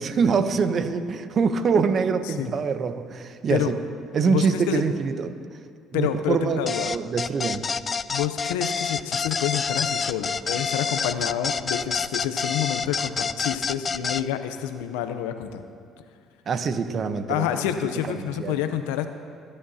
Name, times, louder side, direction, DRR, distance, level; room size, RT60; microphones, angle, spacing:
voice 1, 0.0-3.7 4.1-5.4 5.9-6.6 6.9-7.6 16.5-17.5 18.1-18.6, right 5 dB, 50° right, 10 dB, 0.8 m, -24 dB
voice 2, 4.2-4.8 5.9-6.9 8.1-15.6 17.3-19.1, left 10 dB, 85° left, 9 dB, 0.7 m, -28 dB
sound 1, 6.7-14.2, left 5 dB, 35° left, 0.3 m, -27 dB
22.5 x 10.0 x 2.8 m, 2.3 s
supercardioid pair, 70°, 0 cm